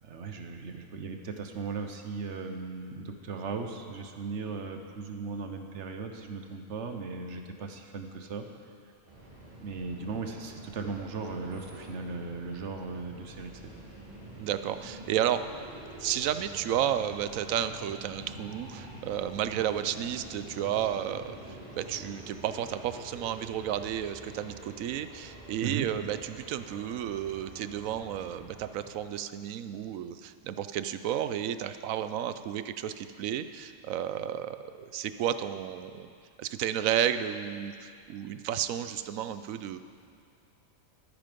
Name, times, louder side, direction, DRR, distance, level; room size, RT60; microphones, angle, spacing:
voice 1, 0.0-8.5 9.6-13.7 25.6-25.9, right 4 dB, 65° right, 5 dB, 1.2 m, -37 dB
sound 1, 9.0-28.9, right 1 dB, 40° right, 2.6 m, -47 dB
voice 2, 14.4-15.4 16.0-36.1 36.4-39.8, right 10 dB, 90° right, 11 dB, 1.0 m, -32 dB
13.0 x 10.0 x 5.2 m, 2.4 s
omnidirectional pair, 1.4 m